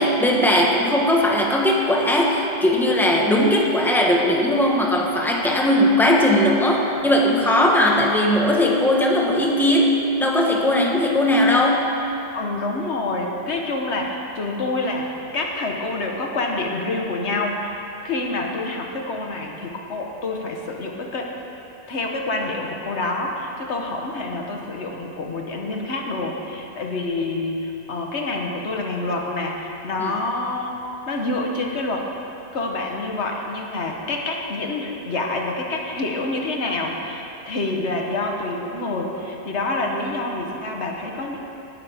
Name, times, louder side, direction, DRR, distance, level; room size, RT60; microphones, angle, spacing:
voice 1, 0.0-11.9 30.0-30.1, left 1 dB, ahead, -2 dB, 1.3 m, -19 dB
voice 2, 12.3-21.3 21.9-30.8 31.1-32.1 32.5-41.5, left 2 dB, 80° left, 1 dB, 1.5 m, -27 dB
18.0 x 11.5 x 3.6 m, 2.9 s
omnidirectional pair, 1.1 m